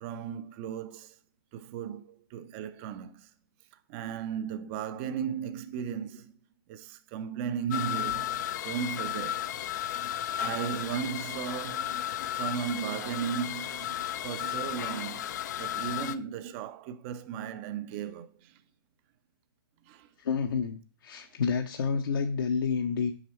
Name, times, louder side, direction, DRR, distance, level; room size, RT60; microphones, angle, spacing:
voice 1, 0.0-1.2 1.5-3.3 3.9-6.4 6.7-9.6 10.4-12.0 12.3-18.6 19.9-20.1, right 8 dB, 30° right, 0.6 m, -36 dB
sound 1, 7.7-16.2, left 11 dB, 50° left, 0.5 m, -34 dB
voice 2, 20.2-23.1, left 5 dB, 65° left, 0.8 m, -29 dB
6.5 x 5.3 x 4.4 m
hypercardioid pair, 135°, 13 cm